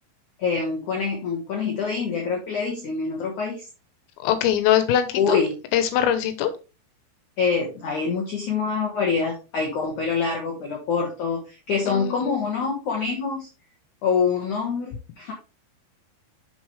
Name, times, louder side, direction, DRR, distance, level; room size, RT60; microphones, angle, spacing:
voice 1, 0.4-3.7 5.2-5.6 7.4-13.5 14.0-15.3, left 5 dB, 70° left, -1 dB, 1.9 m, -25 dB
voice 2, 4.2-5.4 5.7-6.5 11.9-12.3, left 10 dB, 85° left, 10 dB, 3.7 m, -22 dB
7.1 x 6.8 x 3.3 m, 0.30 s
omnidirectional pair, 5.8 m